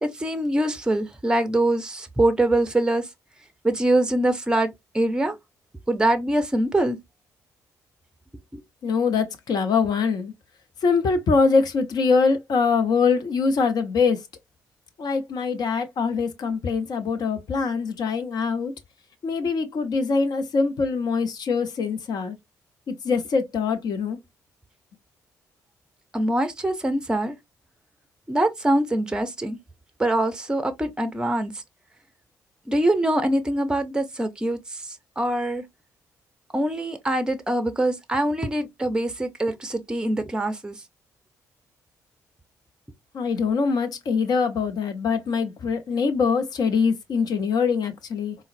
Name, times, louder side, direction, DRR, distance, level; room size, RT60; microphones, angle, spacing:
voice 1, 0.0-3.1 3.6-4.7 4.9-5.4 5.9-7.0 8.5-8.6 26.1-27.4 28.3-29.6 30.0-31.6 32.7-35.6 36.5-40.8, right 1 dB, 10° right, 0.6 m, -24 dB
voice 2, 8.8-10.3 10.8-14.2 15.0-18.7 19.2-22.4 22.9-24.2 43.1-48.3, left 5 dB, 50° left, 0.7 m, -23 dB
3.8 x 2.1 x 2.5 m
figure-of-eight pair, 45°, 9 cm